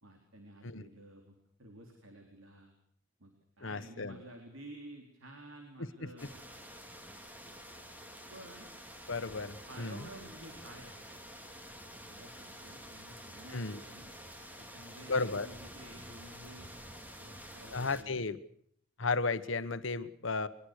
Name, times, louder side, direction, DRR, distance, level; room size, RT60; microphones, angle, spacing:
voice 1, 0.0-2.7 3.2-6.5 8.3-8.7 9.6-11.2 12.0-14.1 14.6-16.7 17.2-18.2, right 1 dB, 85° right, 3 dB, 4.1 m, -52 dB
voice 2, 3.6-4.1 5.8-6.1 9.1-10.1 13.5-13.8 15.1-15.5 17.7-18.4 19.0-20.5, left 3 dB, 70° left, 13 dB, 1.3 m, -34 dB
sound 1, 6.2-18.0, equal, 10° right, 2.3 m, -49 dB
22.5 x 22.5 x 6.6 m, 0.65 s
head